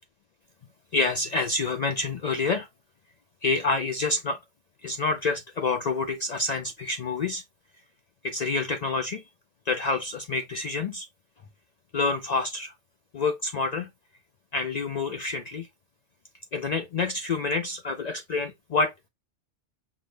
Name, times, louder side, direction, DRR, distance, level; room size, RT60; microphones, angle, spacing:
voice 1, 0.9-2.7 3.4-4.4 4.8-7.4 8.2-9.2 9.7-11.1 11.9-12.7 13.1-13.9 14.5-15.7 16.5-19.1, left 3 dB, 85° left, 0.3 m, -27 dB
5.7 x 2.0 x 3.2 m
omnidirectional pair, 1.3 m